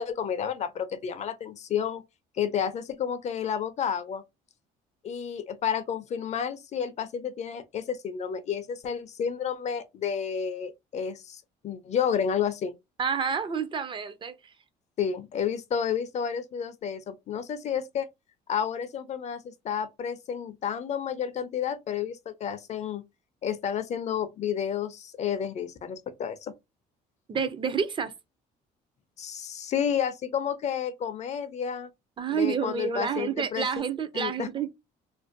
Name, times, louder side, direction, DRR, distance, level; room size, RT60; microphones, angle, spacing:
voice 1, 0.0-2.0 2.3-4.2 5.0-12.7 15.0-18.1 18.5-23.0 23.4-26.5 29.2-31.9 32.3-33.7 34.1-34.5, left 8 dB, 40° left, 0.4 m, -31 dB
voice 2, 13.0-14.5 27.3-28.1 32.2-34.7, right 6 dB, 30° right, 0.4 m, -29 dB
2.5 x 2.2 x 2.5 m
cardioid pair, 110°, 17 cm